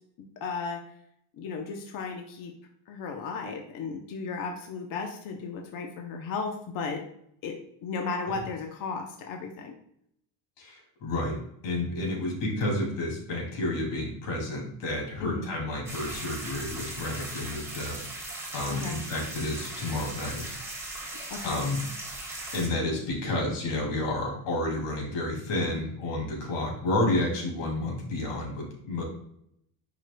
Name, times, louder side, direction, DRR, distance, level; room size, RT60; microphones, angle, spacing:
voice 1, 0.4-0.9 1.4-2.5 2.9-7.0 7.4-9.8 15.2-15.5 18.7-19.0 21.3-21.6, left 4 dB, 45° left, 3 dB, 0.8 m, -35 dB
voice 2, 10.6-20.5 20.9-21.0 21.4-21.8 22.5-29.0, left 2 dB, 85° left, 0 dB, 2.8 m, -31 dB
sound 1, 15.9-22.7, right 2 dB, 5° right, 1.0 m, -38 dB
10.5 x 5.0 x 2.2 m, 0.72 s
cardioid pair, 170°, 48 cm